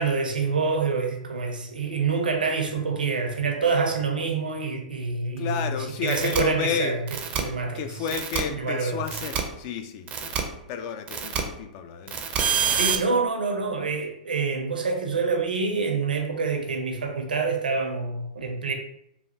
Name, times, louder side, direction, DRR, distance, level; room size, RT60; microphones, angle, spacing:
voice 1, 0.0-7.0 7.3-7.8 8.5-9.0 12.8-18.7, right 4 dB, 90° right, 4 dB, 0.6 m, -26 dB
voice 2, 5.4-7.0 7.7-10.4 10.7-12.2, left 7 dB, 45° left, 7 dB, 0.4 m, -31 dB
sound 1, 6.1-6.4 7.1-7.4 8.1-8.4 9.1-9.4 10.1-10.4 11.1-11.4 12.1-13.0, right 7 dB, 30° right, 0.4 m, -26 dB
3.2 x 2.3 x 2.7 m, 0.77 s
hypercardioid pair, 115°, 5 cm